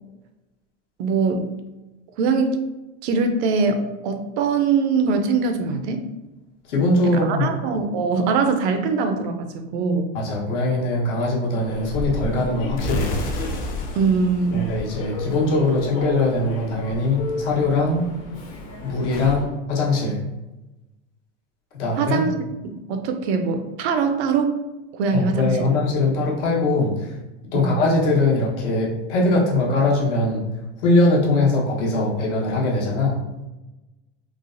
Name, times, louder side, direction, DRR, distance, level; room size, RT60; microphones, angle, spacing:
voice 1, 1.0-1.5 2.2-2.6 3.0-6.1 7.2-10.1 13.9-14.6 21.9-22.3 22.6-24.5 24.9-25.6 27.5-27.7, right 4 dB, 65° right, 6 dB, 0.5 m, -22 dB
voice 2, 6.7-7.5 10.1-13.2 14.5-18.0 18.8-20.2 21.8-22.3 25.1-27.1 27.5-30.4 30.8-33.2, left 2 dB, 75° left, -3 dB, 1.0 m, -21 dB
Human voice / Subway metro underground, 11.6-19.5, left 2 dB, 50° left, 0.8 m, -33 dB
sound 1, 12.8-15.6, left 1 dB, 25° left, 0.4 m, -30 dB
3.2 x 2.0 x 2.5 m, 1.0 s
supercardioid pair, 120°, 36 cm